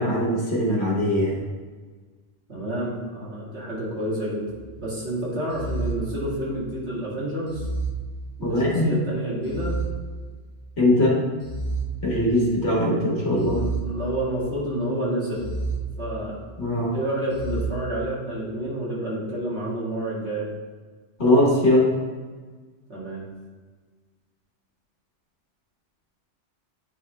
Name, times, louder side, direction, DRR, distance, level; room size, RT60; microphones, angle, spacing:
voice 1, 0.0-1.4 8.4-8.9 10.8-11.2 12.0-13.6 16.6-17.0 21.2-21.9, left 1 dB, 60° left, -4 dB, 1.9 m, -21 dB
voice 2, 2.5-4.5 4.8-7.6 8.4-9.8 13.6-15.5 16.0-16.4 16.9-20.5 22.9-23.2, right 1 dB, 60° right, -7 dB, 2.2 m, -29 dB
sound 1, 4.4-4.8 5.5-6.8 7.5-8.8 9.4-10.7 11.4-12.7 13.4-14.7 15.4-16.6 17.3-17.6, right 3 dB, 75° left, 1.1 m, -32 dB
9.7 x 3.6 x 3.2 m, 1.4 s
omnidirectional pair, 1.3 m